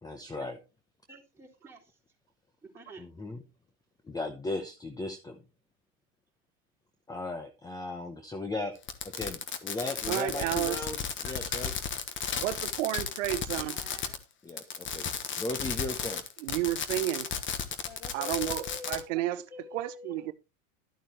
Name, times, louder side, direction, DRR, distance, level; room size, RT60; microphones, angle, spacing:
voice 1, 0.0-0.6 3.0-3.4 4.0-5.4 7.1-8.8 9.0-11.8 14.4-15.1 15.4-16.2, left 2 dB, 10° left, 0.8 m, -37 dB
voice 2, 1.1-2.0 2.6-3.0 13.6-14.2 17.9-20.3, left 2 dB, 5° right, 3.6 m, -45 dB
Fireworks, 8.8-14.2 14.5-19.0, left 7 dB, 30° left, 1.3 m, -34 dB
voice 3, 10.1-10.8 11.2-11.3 12.4-13.8 16.4-17.3 18.1-19.4 19.7-20.3, right 15 dB, 80° right, 0.8 m, -31 dB
11.5 x 8.7 x 3.1 m
supercardioid pair, 120°, 38 cm